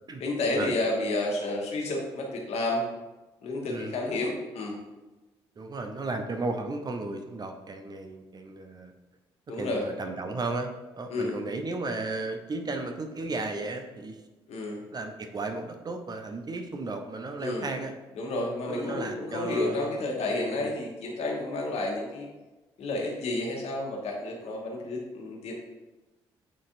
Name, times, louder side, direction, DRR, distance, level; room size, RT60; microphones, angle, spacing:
voice 1, 0.2-2.8 3.4-4.8 9.5-9.8 11.1-11.4 14.5-14.8 17.4-17.7 18.2-22.3 22.8-25.5, left 2 dB, 50° left, 0 dB, 1.3 m, -30 dB
voice 2, 5.6-8.9 9.5-14.2 14.9-17.9 18.7-19.9 20.6-20.7, right 3 dB, 30° right, 5 dB, 0.7 m, -34 dB
9.2 x 4.2 x 2.6 m, 1.1 s
figure-of-eight pair, 40°, 13 cm